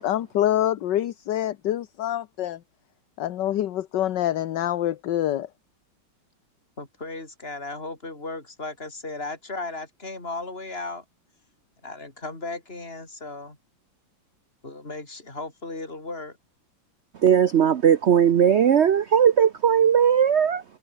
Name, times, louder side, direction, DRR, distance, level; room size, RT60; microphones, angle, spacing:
voice 1, 0.0-2.6 3.2-5.5, left 12 dB, 70° left, 1.5 m, -26 dB
voice 2, 6.8-11.0 11.8-13.6 14.6-16.4, left 2 dB, 30° left, 5.4 m, -36 dB
voice 3, 17.2-20.6, right 8 dB, 75° right, 0.6 m, -18 dB
omnidirectional pair, 2.1 m